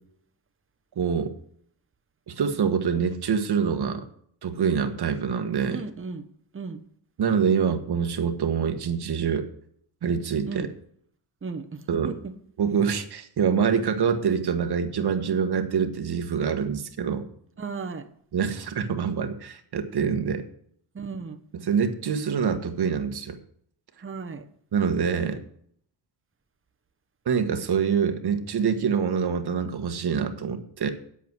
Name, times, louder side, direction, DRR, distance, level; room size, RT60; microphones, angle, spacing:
voice 1, 0.9-1.3 2.3-4.1 4.4-5.8 7.2-9.5 10.0-10.7 11.9-12.1 12.6-17.3 18.3-20.4 21.6-23.4 24.7-25.4 27.2-30.9, right 6 dB, 60° right, 7 dB, 1.5 m, -25 dB
voice 2, 5.7-6.3 6.5-6.8 10.5-10.7 11.4-12.3 17.6-18.1 20.9-21.4 24.0-24.5, right 4 dB, 30° right, 6 dB, 1.1 m, -35 dB
9.6 x 8.2 x 6.2 m, 0.63 s
cardioid pair, 105°, 44 cm